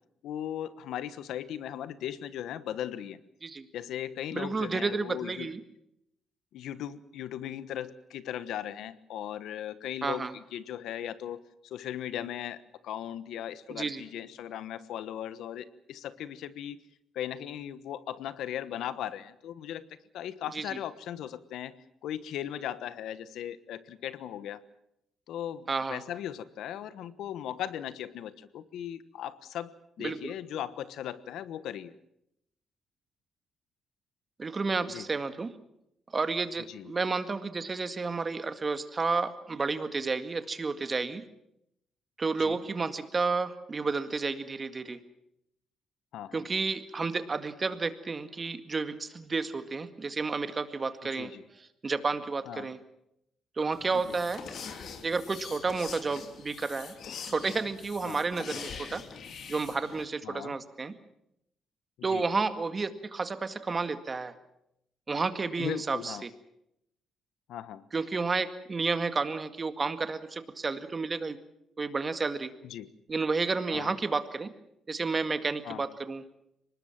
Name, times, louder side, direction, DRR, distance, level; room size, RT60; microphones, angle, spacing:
voice 1, 0.2-3.2 3.7-5.5 6.5-12.6 12.8-16.8 17.1-19.8 20.1-21.7 22.0-24.6 25.3-29.7 30.0-31.9 34.9-35.0 36.7-36.9 42.4-42.6 46.1-46.4 51.1-51.4 52.5-52.7 54.1-54.2 58.0-58.2 60.2-60.6 62.0-62.3 65.6-66.2 67.5-67.8 72.6-72.9 73.7-73.9 75.6-75.8, left 10 dB, 80° left, 14 dB, 1.3 m, -38 dB
voice 2, 4.3-5.6 10.0-10.3 13.7-14.0 20.5-20.8 25.7-26.0 30.0-30.3 34.4-35.5 36.1-41.2 42.2-45.0 46.3-52.8 53.6-54.4 55.0-56.9 57.3-59.0 59.5-60.9 62.0-64.3 65.1-66.3 67.9-71.4 71.8-72.5 73.1-74.5 74.9-76.2, right 4 dB, 30° right, 10 dB, 2.0 m, -31 dB
sound 1, 53.7-60.1, left 6 dB, 65° left, 2.9 m, -43 dB
24.5 x 20.0 x 7.5 m, 0.80 s
cardioid pair, 90°, 0 cm